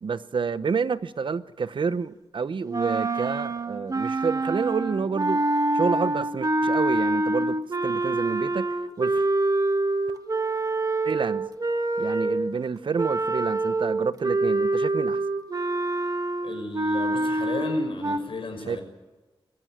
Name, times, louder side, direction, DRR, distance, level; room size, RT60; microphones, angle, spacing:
voice 1, 0.0-5.4 5.7-9.3 11.0-11.5 12.0-15.2 18.7-18.8, right 5 dB, 65° right, 14 dB, 0.8 m, -29 dB
sound 1, 2.7-12.5 13.0-18.2, right 2 dB, 40° right, 1.6 m, -26 dB
voice 2, 16.4-18.8, left 2 dB, 70° left, 4 dB, 5.7 m, -34 dB
21.5 x 15.5 x 9.1 m, 1.2 s
wide cardioid pair, 100°, 9 cm